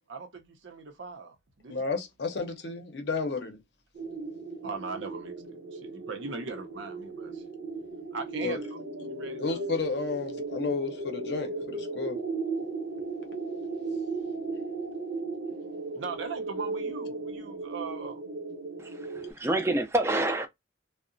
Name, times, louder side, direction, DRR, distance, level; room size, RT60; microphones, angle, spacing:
voice 1, 0.1-1.9 4.6-7.4 8.1-9.6 15.9-18.2, right 4 dB, 90° right, 0.6 m, -40 dB
voice 2, 1.7-3.6 8.4-8.6 9.4-12.2, left 4 dB, 65° left, 0.6 m, -32 dB
sound 1, 3.9-19.3, right 3 dB, 60° right, 0.8 m, -36 dB
voice 3, 18.8-20.5, right 2 dB, 15° right, 0.3 m, -28 dB
2.8 x 2.1 x 2.5 m
head